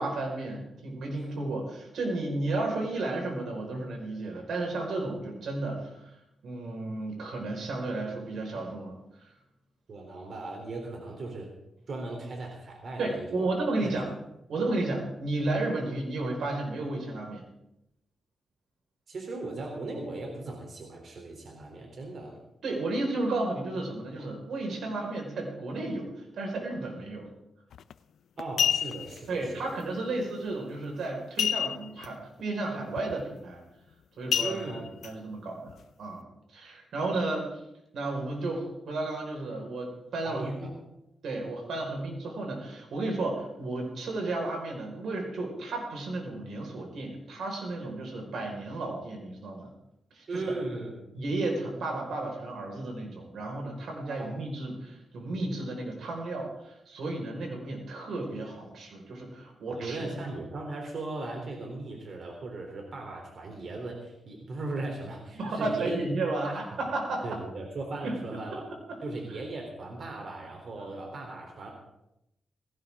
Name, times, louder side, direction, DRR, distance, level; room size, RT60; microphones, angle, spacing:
voice 1, 0.0-6.1 6.4-9.0 13.0-14.1 14.5-17.4 22.6-27.3 29.3-33.6 34.2-36.2 36.5-37.5 37.9-40.7 41.2-49.7 50.1-50.4 51.1-60.1 65.3-67.4 68.0-68.2 68.9-69.0 70.8-70.9, right 2 dB, 75° right, 0 dB, 5.2 m, -33 dB
voice 2, 9.9-11.5 11.9-13.5 13.8-14.0 19.1-22.4 28.4-29.8 34.4-35.0 40.2-40.7 50.3-51.1 54.0-54.4 59.7-66.0 66.4-66.7 67.2-68.6 69.0-71.7, right 2 dB, 55° right, 1 dB, 3.6 m, -38 dB
sound 1, 27.7-27.9 28.4-29.2 31.4-32.1 32.4-32.5 33.0-33.2 34.3-35.1 35.7-35.8, left 8 dB, 80° left, 0.5 m, -28 dB
18.5 x 16.5 x 3.8 m, 0.85 s
cardioid pair, 100°, 0 cm